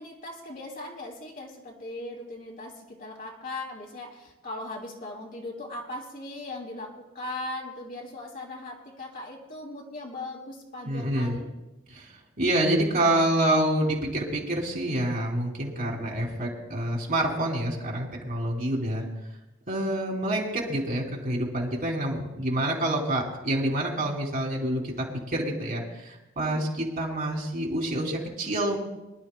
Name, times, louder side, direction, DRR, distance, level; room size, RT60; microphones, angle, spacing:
voice 1, 0.0-11.5, left 2 dB, 45° left, -1 dB, 2.7 m, -39 dB
voice 2, 10.9-11.4 11.9-12.1 12.4-19.0 19.7-28.8, right 1 dB, 45° right, -1 dB, 2.8 m, -27 dB
24.5 x 11.5 x 2.2 m, 0.97 s
head